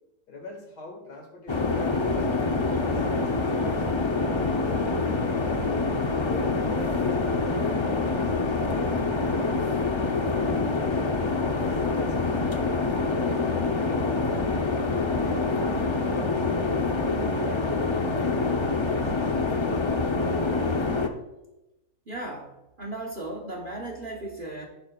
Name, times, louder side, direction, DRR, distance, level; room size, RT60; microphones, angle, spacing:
voice 1, 0.3-2.3 2.8-3.8 4.2-5.5 6.0-10.0 10.3-11.0 11.5-13.7 14.1-14.7 15.1-17.0 17.2-19.7, left 4 dB, 70° left, 1 dB, 2.8 m, -43 dB
sound 1, 1.5-21.1, left 3 dB, 45° left, 0.3 m, -26 dB
voice 2, 22.1-22.5 22.8-24.7, right 2 dB, 35° right, 1 dB, 1.2 m, -36 dB
11.0 x 10.5 x 2.4 m, 0.94 s
omnidirectional pair, 1.8 m